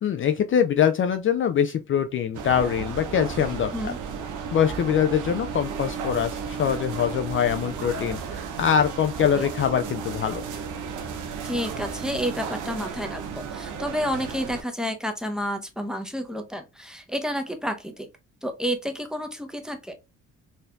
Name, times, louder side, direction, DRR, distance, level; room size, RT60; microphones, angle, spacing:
voice 1, 0.0-3.9 4.5-10.4, left 8 dB, 45° left, 0.4 m, -23 dB
sound 1, 2.3-14.6, right 6 dB, 85° right, 0.7 m, -34 dB
voice 2, 11.4-18.1 18.4-19.9, equal, ahead, 0.7 m, -30 dB
4.2 x 2.6 x 2.2 m
cardioid pair, 90°, 30 cm